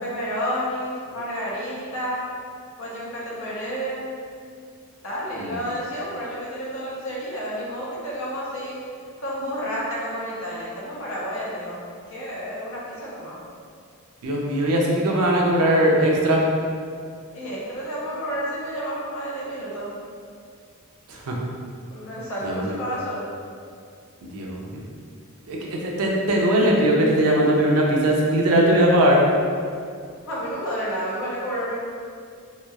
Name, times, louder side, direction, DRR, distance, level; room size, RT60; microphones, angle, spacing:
voice 1, 0.0-2.3 2.8-4.1 5.0-8.8 9.2-11.8 12.1-13.4 17.3-20.0 21.9-23.3 30.2-31.8, equal, 60° left, -6 dB, 0.7 m, -30 dB
voice 2, 14.2-16.4 21.1-21.4 22.4-22.8 24.3-24.8 25.5-29.2, right 1 dB, 90° right, -1 dB, 0.5 m, -20 dB
2.9 x 2.2 x 2.2 m, 2.2 s
head